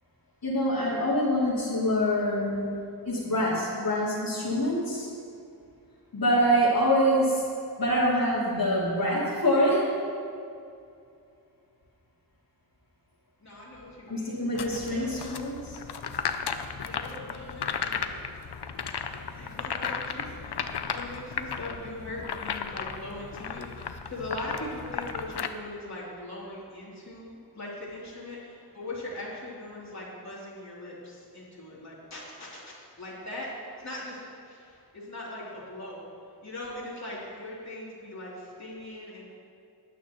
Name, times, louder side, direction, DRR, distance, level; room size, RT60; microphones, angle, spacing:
voice 1, 0.4-2.8 3.0-5.1 6.1-7.4 7.8-9.9 14.1-15.8, equal, 55° left, -10 dB, 2.9 m, -25 dB
voice 2, 13.4-15.2 16.8-18.2 19.1-36.0 36.4-39.3, left 1 dB, 40° left, -8 dB, 3.2 m, -40 dB
sound 1, 14.5-25.5, left 6 dB, 70° left, 0.7 m, -35 dB
19.0 x 9.1 x 3.1 m, 2.5 s
wide cardioid pair, 65°, 41 cm